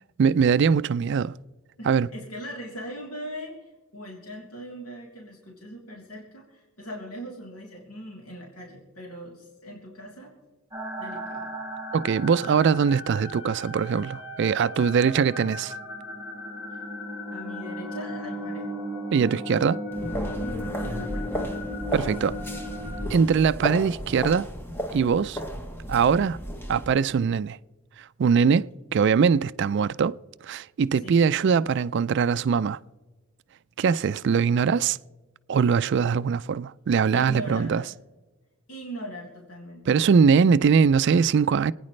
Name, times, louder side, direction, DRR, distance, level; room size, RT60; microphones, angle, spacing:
voice 1, 0.2-1.4 1.9-2.1 11.9-15.7 19.1-19.8 21.9-22.4 23.1-24.5 24.9-25.4 25.9-26.4 26.7-27.6 28.0-30.2 30.4-32.8 33.8-35.0 35.5-37.8 39.9-41.7, right 6 dB, 55° right, 0.3 m, -22 dB
voice 2, 1.8-10.3 11.0-11.5 15.0-15.1 16.7-16.8 17.3-18.7 20.7-21.5 31.0-31.2 34.0-34.1 37.1-37.9 38.7-40.0, equal, 85° left, 3.3 m, -40 dB
sound 1, 10.7-23.0, equal, 10° right, 4.9 m, -36 dB
sound 2, 19.9-26.9, equal, 10° left, 1.1 m, -33 dB
27.5 x 9.7 x 3.2 m
head